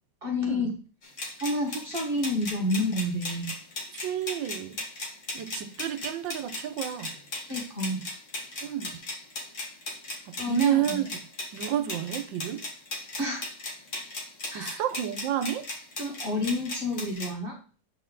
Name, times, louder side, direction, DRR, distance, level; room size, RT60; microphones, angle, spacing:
voice 1, 0.2-0.7 1.4-3.5 7.5-8.0 10.4-11.0 13.2-13.4 14.5-14.8 16.0-17.5, left 1 dB, 30° right, 1.6 m, -29 dB
sound 1, 1.0-17.3, left 2 dB, 40° left, 1.9 m, -37 dB
voice 2, 3.9-4.8 5.3-7.1 8.6-9.0 10.3-11.3 11.5-12.6 14.5-15.7, right 11 dB, 85° right, 1.4 m, -30 dB
8.1 x 4.4 x 3.9 m
omnidirectional pair, 2.0 m